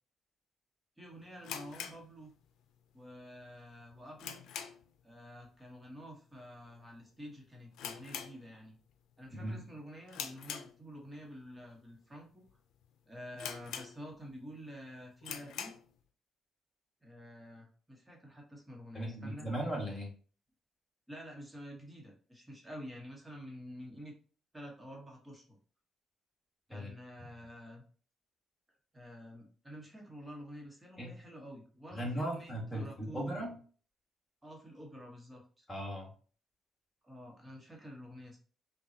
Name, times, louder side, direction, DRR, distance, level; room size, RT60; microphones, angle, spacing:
voice 1, 1.0-2.3 2.9-4.4 5.0-8.7 9.2-12.4 13.1-15.7 17.0-19.5 21.1-24.1 24.5-25.6 26.7-27.8 28.9-33.3 34.4-35.7 37.0-38.4, equal, 15° right, -1 dB, 1.2 m, -49 dB
sound 1, 1.4-2.8 3.0-3.1 3.7-5.0 5.3-5.6 5.9-6.0 6.7-6.9 7.2-7.3 7.7-8.9 9.3-9.6 10.1-11.2 11.8-11.9 12.5-12.6 12.8-12.9 13.4-14.3 14.7-14.8 15.2-15.9, left 8 dB, 85° left, 0.4 m, -44 dB
voice 2, 18.9-20.1 26.7-26.9 27.2-27.3 31.0-31.1 31.9-33.5 35.7-36.1, right 1 dB, 20° left, -2 dB, 1.9 m, -37 dB
5.4 x 2.3 x 2.8 m, 0.41 s
cardioid pair, 90°, 0 cm